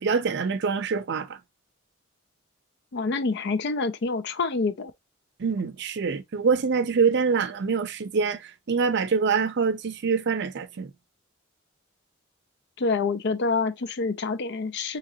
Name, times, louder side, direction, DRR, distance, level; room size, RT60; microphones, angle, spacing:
voice 1, 0.0-1.4 5.4-10.9, right 5 dB, 60° right, 0.5 m, -25 dB
voice 2, 2.9-4.9 12.8-15.0, left 4 dB, 60° left, 0.5 m, -27 dB
3.8 x 3.0 x 2.8 m
head